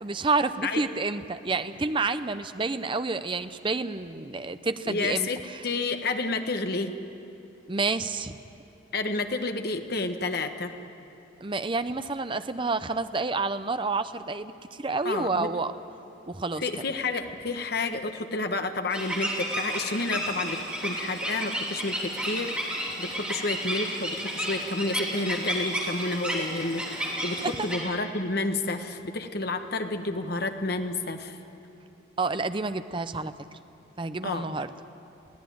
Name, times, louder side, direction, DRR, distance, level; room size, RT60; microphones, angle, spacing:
voice 1, 0.0-5.6 7.7-8.4 11.4-15.7 16.3-16.6 27.4-27.5 32.2-33.3 34.0-34.7, right 3 dB, 25° right, 11 dB, 0.6 m, -29 dB
voice 2, 4.9-5.4 5.6-6.9 8.9-10.7 15.0-15.5 16.6-31.4 34.2-34.5, left 3 dB, 55° left, 7 dB, 1.2 m, -30 dB
sound 1, 18.9-27.8, right 1 dB, 5° right, 3.2 m, -32 dB
22.0 x 15.5 x 9.3 m, 2.9 s
head